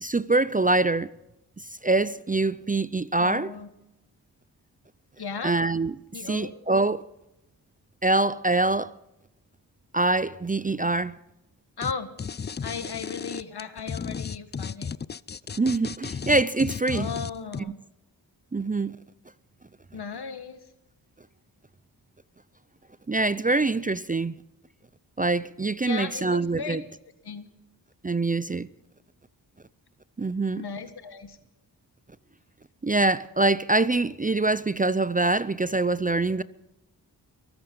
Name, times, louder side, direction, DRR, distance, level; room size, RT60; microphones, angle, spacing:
voice 1, 0.0-1.1 1.6-3.5 5.4-6.0 6.3-7.1 8.0-8.9 9.9-11.2 15.6-17.1 18.5-19.0 23.1-24.4 25.2-26.8 28.0-28.7 30.2-30.6 32.8-36.4, right 2 dB, 20° right, 0.6 m, -24 dB
voice 2, 3.2-3.7 5.2-5.6 6.1-6.5 11.8-12.1 12.6-14.9 16.9-17.8 19.9-20.6 25.8-26.8 27.2-27.5 30.5-31.4, left 5 dB, 60° left, 1.8 m, -36 dB
sound 1, 11.8-11.9 12.2-17.6, left 6 dB, 25° left, 0.4 m, -34 dB
23.5 x 8.7 x 5.4 m
cardioid pair, 40°, 43 cm